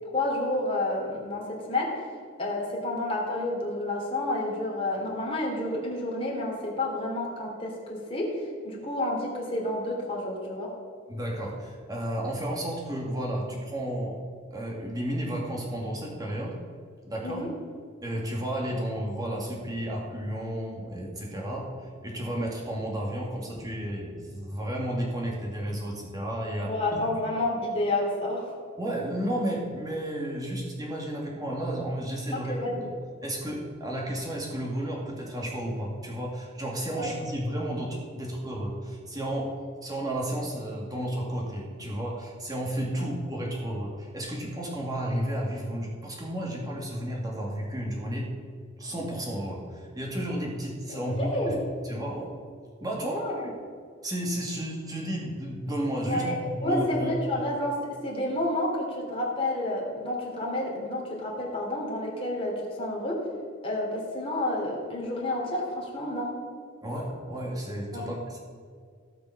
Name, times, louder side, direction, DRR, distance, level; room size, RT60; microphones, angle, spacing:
voice 1, 0.1-1.4 1.7-1.9 2.4-8.3 8.6-10.7 17.2-17.5 26.6-28.5 32.3-32.9 37.0-37.1 42.9-43.1 50.9-51.6 53.0-53.5 56.0-57.7 58.0-63.2 63.6-66.3 67.9-68.2, left 1 dB, 30° left, -2 dB, 3.0 m, -30 dB
voice 2, 11.1-14.2 14.5-16.6 17.0-17.4 18.0-21.7 22.0-27.0 28.8-32.9 33.2-39.5 39.8-48.3 48.8-51.6 51.8-52.3 52.8-53.5 54.0-57.1 66.8-68.4, right 1 dB, 20° right, -3 dB, 2.4 m, -32 dB
17.0 x 6.0 x 5.9 m, 2.1 s
head